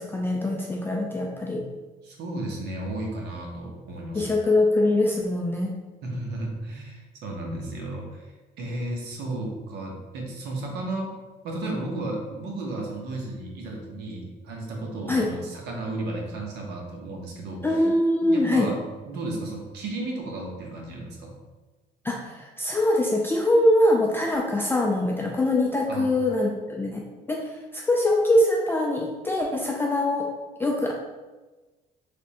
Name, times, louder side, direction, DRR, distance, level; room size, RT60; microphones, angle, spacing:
voice 1, 0.0-1.7 4.1-5.7 15.1-15.3 17.6-18.7 22.0-30.3 30.6-30.9, left 1 dB, 15° left, -1 dB, 0.3 m, -23 dB
voice 2, 2.0-4.3 6.0-11.2 11.4-17.7 18.3-21.3 25.9-26.2, right 2 dB, 80° right, 0 dB, 0.9 m, -33 dB
3.4 x 3.1 x 2.9 m, 1.2 s
cardioid pair, 110°, 17 cm